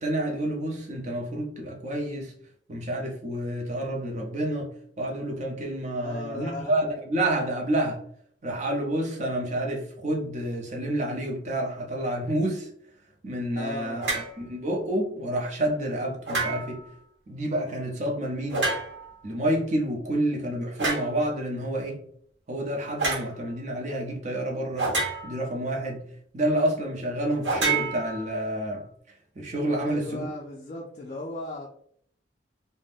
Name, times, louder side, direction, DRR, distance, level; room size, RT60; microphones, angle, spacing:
voice 1, 0.0-2.3 2.7-4.7 5.0-8.0 8.4-12.7 13.2-14.0 14.4-16.8 17.3-18.7 19.2-22.0 22.5-24.9 25.2-26.0 26.3-28.8 29.4-30.3, right 1 dB, 40° right, 0.6 m, -29 dB
voice 2, 6.0-6.7 13.6-14.0 29.8-31.7, left 2 dB, 40° left, 0.3 m, -36 dB
sound 1, 14.0-14.4 16.3-16.9 18.5-19.1 20.8-21.1 23.0-23.3 24.8-25.5 27.4-28.6, right 3 dB, 70° right, 0.9 m, -28 dB
2.5 x 2.1 x 3.4 m
head